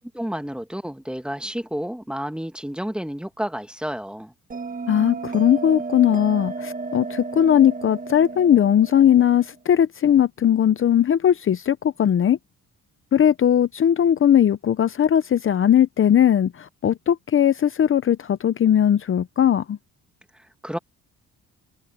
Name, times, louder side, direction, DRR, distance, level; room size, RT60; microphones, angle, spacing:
voice 1, 0.1-4.3 20.3-20.8, equal, 5° right, 2.0 m, -31 dB
Bell, 4.5-9.6, right 4 dB, 25° right, 1.7 m, -33 dB
voice 2, 4.9-12.4 13.1-19.8, left 9 dB, 45° left, 0.7 m, -19 dB
cardioid pair, 90°, 30 cm